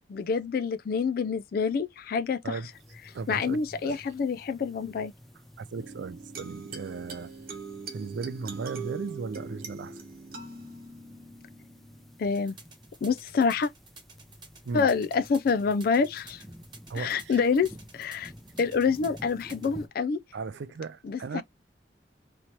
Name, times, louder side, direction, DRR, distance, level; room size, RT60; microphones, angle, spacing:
voice 1, 0.1-2.6 3.3-5.1 12.2-12.6 13.0-13.7 14.7-16.4 17.0-18.3 18.6-20.2 21.0-21.4, left 5 dB, 55° left, 0.3 m, -27 dB
sound 1, 2.7-19.9, equal, ahead, 0.6 m, -51 dB
voice 2, 3.1-4.0 5.6-7.3 7.9-10.0 14.6-14.9 16.9-17.4 20.3-21.4, right 4 dB, 80° right, 0.4 m, -36 dB
sound 2, 5.8-12.7, right 4 dB, 55° right, 1.0 m, -42 dB
sound 3, 12.3-19.7, right 4 dB, 25° right, 1.2 m, -51 dB
3.0 x 2.8 x 4.3 m
head